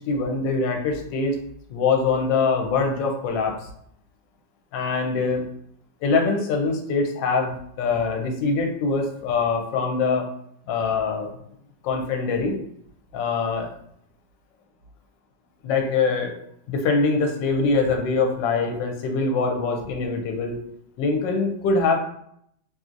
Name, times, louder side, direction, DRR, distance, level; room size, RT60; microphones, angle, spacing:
voice 1, 0.1-1.4 1.7-3.7 4.7-5.4 6.0-10.3 10.7-11.3 11.8-12.6 13.1-13.7 15.6-16.3 16.7-20.6 21.0-22.0, left 4 dB, 85° left, 3 dB, 1.3 m, -23 dB
3.0 x 2.6 x 2.4 m, 0.69 s
omnidirectional pair, 2.0 m